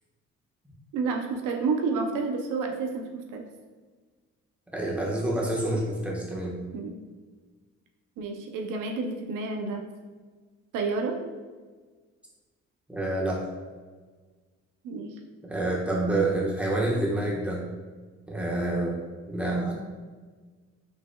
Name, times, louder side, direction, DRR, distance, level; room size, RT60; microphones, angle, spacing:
voice 1, 0.9-3.4 6.7-7.0 8.2-9.8 10.7-11.2 14.8-15.1, right 4 dB, 85° right, 3 dB, 0.6 m, -30 dB
voice 2, 4.7-6.6 12.9-13.5 15.4-17.6 18.3-19.0 19.3-19.7, right 2 dB, 5° right, -4 dB, 1.2 m, -27 dB
5.2 x 3.9 x 2.2 m, 1.4 s
cardioid pair, 90°, 30 cm